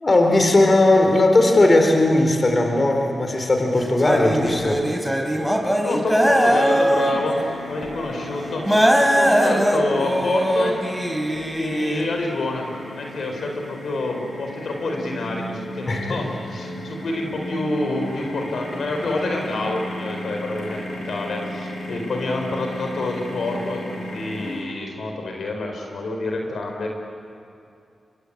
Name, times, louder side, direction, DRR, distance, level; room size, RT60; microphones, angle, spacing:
voice 1, 0.0-4.8 15.9-16.2, left 2 dB, 40° left, 4 dB, 4.2 m, -17 dB
sound 1, 3.7-7.4 7.8-7.9 8.7-12.0, equal, ahead, 4.4 m, -20 dB
voice 2, 5.8-10.8 11.6-20.8 21.1-26.9, left 2 dB, 75° left, 2 dB, 4.5 m, -27 dB
sound 2, 7.1-24.6, left 1 dB, 90° left, 7.1 m, -35 dB
26.0 x 22.5 x 8.8 m, 2.5 s
supercardioid pair, 45°, 0 cm